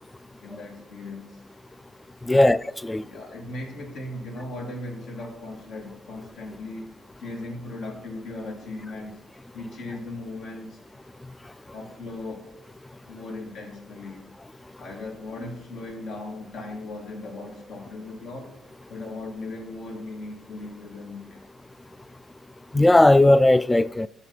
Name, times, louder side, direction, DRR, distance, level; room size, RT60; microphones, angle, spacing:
voice 1, 0.4-1.4 2.3-2.6 3.0-6.9 7.2-9.2 9.5-10.8 11.7-12.5 13.1-14.3 14.8-18.6 18.9-21.4, left 2 dB, 80° left, 2.6 m, -37 dB
voice 2, 2.3-3.0 22.7-24.1, left 1 dB, 15° left, 0.3 m, -17 dB
14.0 x 6.4 x 4.2 m
cardioid pair, 90°, 0 cm